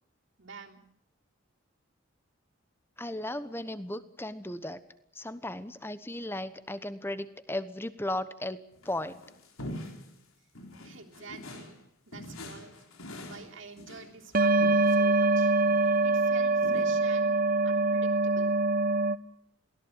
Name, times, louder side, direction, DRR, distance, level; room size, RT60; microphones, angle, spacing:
voice 1, 0.4-0.8 10.8-11.7 12.1-12.8 13.2-15.5 15.8-17.4 17.6-18.5, right 4 dB, 65° right, 1 dB, 3.2 m, -48 dB
voice 2, 3.0-4.8 5.1-9.2, left 1 dB, 10° left, 13 dB, 1.0 m, -36 dB
sound 1, 8.7-10.2 10.5-11.8 12.1-15.0 15.6-15.9 16.6-16.9, left 1 dB, 80° left, 3.9 m, -44 dB
sound 2, 14.3-19.2, right 2 dB, 40° right, 0.9 m, -24 dB
23.0 x 17.0 x 9.2 m, 0.75 s
head